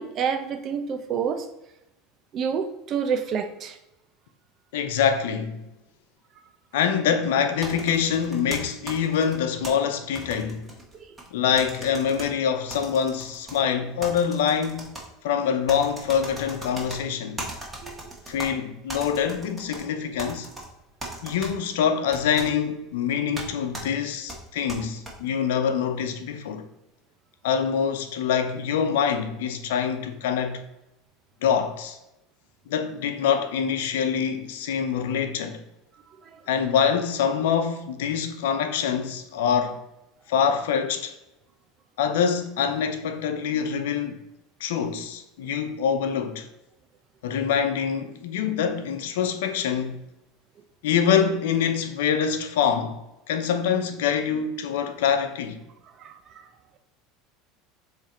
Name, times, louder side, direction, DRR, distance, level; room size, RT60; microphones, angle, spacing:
voice 1, 0.0-1.5 2.3-3.8 17.8-18.1 56.0-56.5, right 7 dB, 45° right, 0.9 m, -28 dB
voice 2, 4.7-5.6 6.7-10.7 11.3-14.9 15.2-17.5 18.3-20.5 21.2-26.6 27.4-30.6 31.4-32.0 32.7-35.6 36.5-39.8 40.3-41.2 42.0-44.2 44.6-46.5 47.2-50.0 50.8-55.6, left 7 dB, 80° left, 0.8 m, -25 dB
sound 1, 7.6-9.7 10.2-11.3 11.6-12.3 12.7-13.6 14.0-15.1 15.7-17.0 17.4-18.5 18.9-19.8 20.2-20.7 21.0-21.5 22.1-22.5 23.4-23.5 23.7-23.9 24.3-25.1, right 1 dB, 15° right, 2.2 m, -37 dB
7.1 x 3.4 x 4.4 m
supercardioid pair, 100°, 0 cm